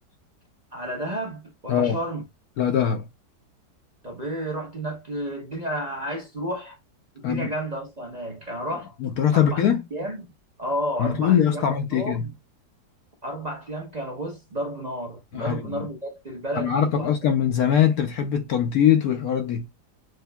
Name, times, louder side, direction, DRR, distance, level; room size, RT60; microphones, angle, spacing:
voice 1, 0.7-2.2 4.0-6.8 7.1-8.9 9.3-9.6 9.9-10.3 10.6-12.3 13.2-17.1, right 1 dB, 30° right, 0.9 m, -31 dB
voice 2, 2.6-3.1 7.2-7.5 9.0-9.9 11.0-12.3 15.3-15.9 16.5-19.7, left 9 dB, 65° left, 1.1 m, -22 dB
6.3 x 2.7 x 2.2 m
omnidirectional pair, 1.8 m